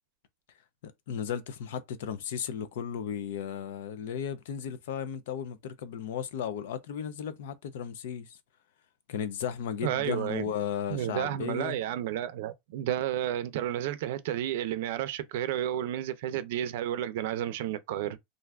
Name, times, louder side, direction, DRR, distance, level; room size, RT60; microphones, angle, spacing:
voice 1, 0.8-8.4 9.1-11.8, left 8 dB, 75° left, 0.5 m, -35 dB
voice 2, 9.8-10.4 10.9-18.2, right 11 dB, 60° right, 0.5 m, -31 dB
2.5 x 2.4 x 3.3 m
supercardioid pair, 170°, 0 cm